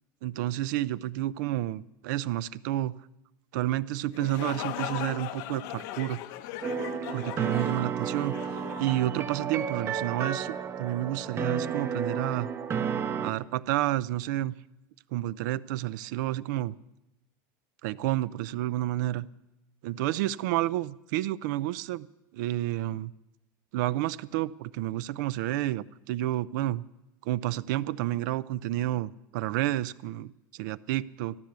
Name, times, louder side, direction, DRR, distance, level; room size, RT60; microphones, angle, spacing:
voice 1, 0.2-2.9 3.5-6.2 7.1-8.4 8.8-12.5 13.2-14.5 15.1-16.8 17.8-19.3 19.8-22.1 22.3-23.1 23.7-26.8 27.2-31.4, right 15 dB, 75° right, 18 dB, 0.5 m, -30 dB
sound 1, 4.0-9.7, left 12 dB, 65° left, 0.9 m, -39 dB
sound 2, 6.6-13.3, right 7 dB, 25° right, 0.7 m, -32 dB
13.5 x 11.5 x 8.1 m, 0.93 s
supercardioid pair, 150°, 10 cm